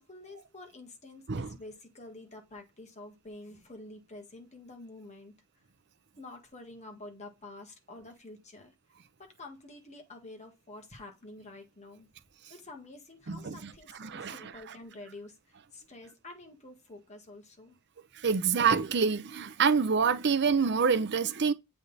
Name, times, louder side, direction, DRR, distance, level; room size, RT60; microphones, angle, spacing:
voice 1, 0.0-5.3 6.2-8.7 9.2-12.1 12.5-17.8, left 2 dB, 30° left, 1.6 m, -48 dB
voice 2, 13.3-13.7 14.0-14.4 18.2-21.5, right 5 dB, 55° right, 0.6 m, -26 dB
7.8 x 3.5 x 4.0 m
head